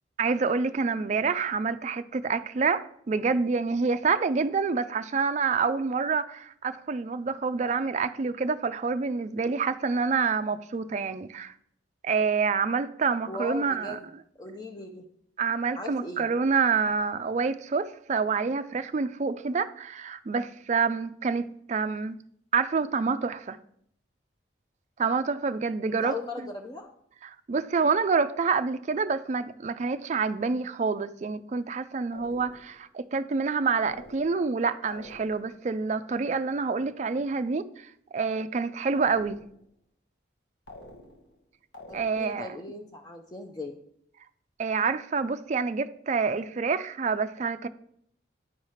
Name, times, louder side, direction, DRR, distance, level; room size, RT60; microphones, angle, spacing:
voice 1, 0.2-11.5 12.0-14.0 15.4-22.2 22.5-23.6 25.0-26.1 27.5-39.4 41.9-42.5 44.6-47.7, right 5 dB, 40° right, 0.3 m, -27 dB
voice 2, 13.3-14.1 14.4-15.1 15.7-16.3 25.9-26.9 41.9-43.8, left 2 dB, 20° left, 0.5 m, -38 dB
sound 1, 32.1-32.8 33.8-34.6 34.9-35.6 39.0-39.7 40.7-41.4 41.7-42.5, left 1 dB, 65° left, 1.3 m, -48 dB
9.5 x 3.2 x 5.6 m
head